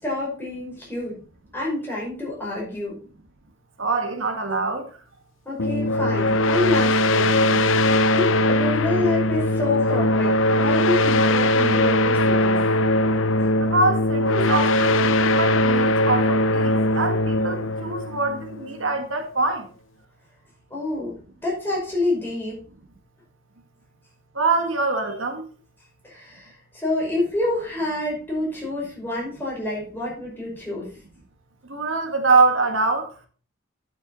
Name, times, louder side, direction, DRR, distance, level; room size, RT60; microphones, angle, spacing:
voice 1, 0.0-1.2 1.5-3.0 5.5-7.6 7.9-12.6 20.7-22.6 26.0-30.9, left 2 dB, 10° left, 5.4 m, -28 dB
voice 2, 3.8-4.9 13.6-19.6 24.3-25.4 31.7-33.1, right 3 dB, 75° right, 1.7 m, -24 dB
sound 1, 5.6-18.9, left 1 dB, 75° left, 0.7 m, -20 dB
10.5 x 7.1 x 4.1 m
head